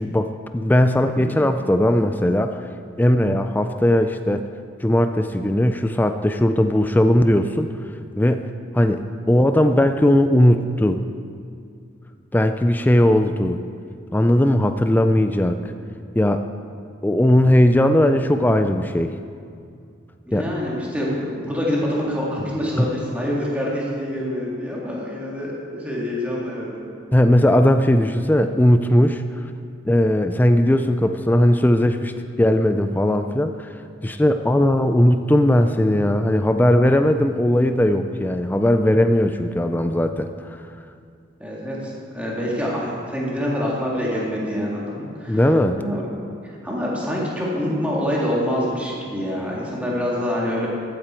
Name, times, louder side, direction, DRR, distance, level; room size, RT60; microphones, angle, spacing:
voice 1, 0.0-2.6 3.0-4.4 4.8-7.7 8.2-8.5 8.7-9.0 9.3-11.0 12.3-13.6 14.1-15.7 16.1-16.4 17.0-19.1 20.3-20.4 22.8-22.9 27.1-29.2 29.8-32.1 32.4-33.7 34.0-40.6 45.3-45.8, left 1 dB, 10° left, 8 dB, 0.3 m, -18 dB
voice 2, 20.3-26.7 41.4-45.5 45.8-46.0 46.6-50.7, equal, 5° right, -5 dB, 2.2 m, -26 dB
14.5 x 8.8 x 4.5 m, 2.4 s
head